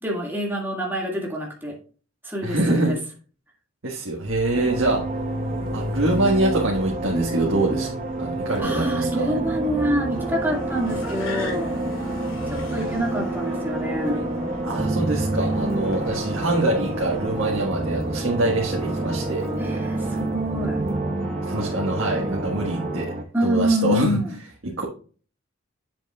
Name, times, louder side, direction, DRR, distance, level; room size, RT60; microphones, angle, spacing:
voice 1, 0.0-1.8 2.2-3.0 8.6-11.8 12.5-14.2 19.6-20.8 23.3-24.4, equal, 10° right, -2 dB, 1.8 m, -26 dB
voice 2, 2.4-2.9 3.8-5.0 5.7-7.9 8.2-9.3 14.6-19.5 21.4-23.1 23.4-24.2 24.6-24.8, right 2 dB, 85° right, -2 dB, 1.4 m, -24 dB
Car, 4.2-21.0, left 1 dB, 80° left, 2.2 m, -37 dB
sound 1, 4.5-23.2, right 2 dB, 35° right, 0.7 m, -29 dB
sound 2, 9.6-23.0, right 1 dB, 5° left, 2.9 m, -34 dB
7.6 x 7.6 x 2.3 m, 0.39 s
head